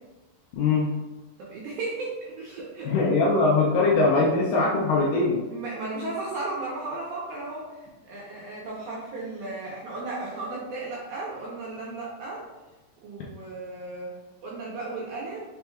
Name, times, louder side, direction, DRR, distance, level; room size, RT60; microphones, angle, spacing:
voice 1, 0.5-0.9 2.8-5.4, left 3 dB, 75° left, -4 dB, 1.9 m, -21 dB
voice 2, 1.4-2.9 5.5-12.4 13.0-15.4, right 2 dB, 75° right, -5 dB, 1.8 m, -35 dB
5.8 x 3.8 x 2.2 m, 1.1 s
omnidirectional pair, 4.1 m